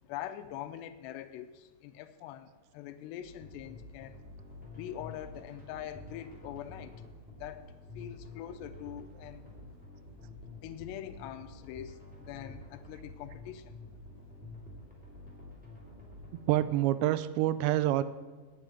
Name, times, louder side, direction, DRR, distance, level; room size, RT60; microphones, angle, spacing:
voice 1, 0.1-2.5 2.7-4.2 4.7-6.9 7.4-7.7 8.0-9.4 10.6-12.0 12.3-13.8, left 11 dB, 85° left, 9 dB, 2.7 m, -43 dB
sound 1, 3.2-16.6, left 2 dB, 5° right, 2.0 m, -49 dB
voice 2, 16.5-18.0, right 14 dB, 85° right, 14 dB, 2.8 m, -27 dB
9.1 x 7.6 x 9.0 m, 1.3 s
omnidirectional pair, 5.1 m